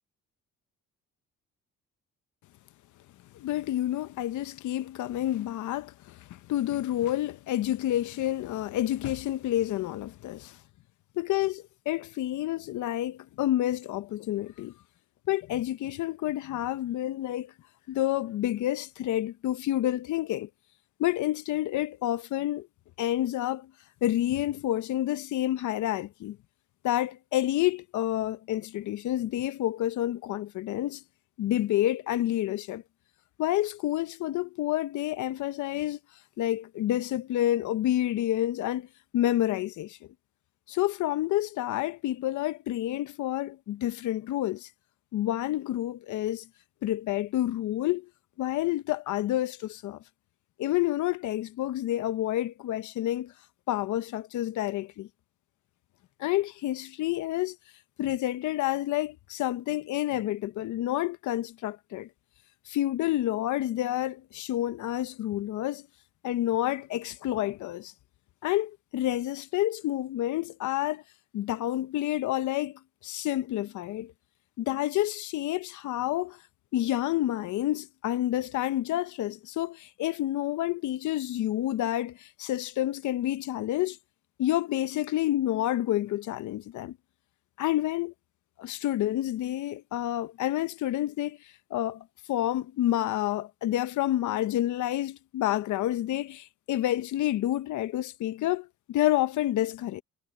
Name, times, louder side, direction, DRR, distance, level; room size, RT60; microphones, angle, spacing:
voice 1, 3.3-10.6 11.2-14.7 15.3-17.5 17.9-20.5 21.0-22.7 23.0-23.7 24.0-26.4 26.8-31.0 31.4-32.8 33.4-36.0 36.4-38.9 39.1-40.0 40.7-44.7 45.1-46.4 46.8-48.1 48.4-50.0 50.6-53.3 53.7-55.1 56.2-57.6 58.0-62.1 62.7-65.9 66.2-67.9 68.4-71.0 71.3-74.1 74.6-76.4 76.7-84.0 84.4-87.0 87.6-88.1 88.6-100.0, left 14 dB, 75° left, 0.7 m, -29 dB
cardioid pair, 90°, 30 cm